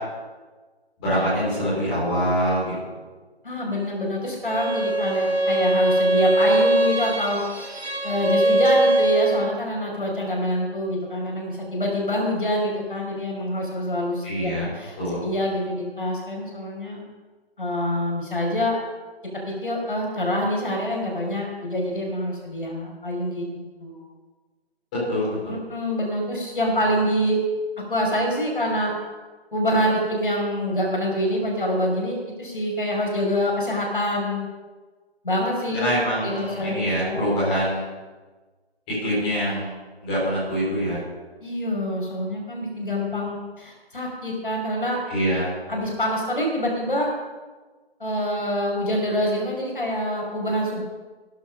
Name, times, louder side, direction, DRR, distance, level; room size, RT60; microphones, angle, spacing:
voice 1, 1.0-2.7 14.2-14.7 15.0-15.2 25.1-25.6 35.7-38.0 39.0-39.7 40.0-41.0 45.1-45.5, equal, 5° left, -11 dB, 4.1 m, -24 dB
voice 2, 3.4-7.7 8.0-15.0 15.2-17.0 17.6-18.8 19.5-23.5 23.8-24.0 25.5-27.4 27.9-28.9 29.5-34.5 35.2-37.3 41.4-45.0 45.7-47.1 48.0-50.8, equal, 55° left, -1 dB, 5.3 m, -26 dB
Bowed string instrument, 4.4-9.6, right 1 dB, 75° right, 2.7 m, -21 dB
16.0 x 11.5 x 5.5 m, 1.3 s
figure-of-eight pair, 175°, 31 cm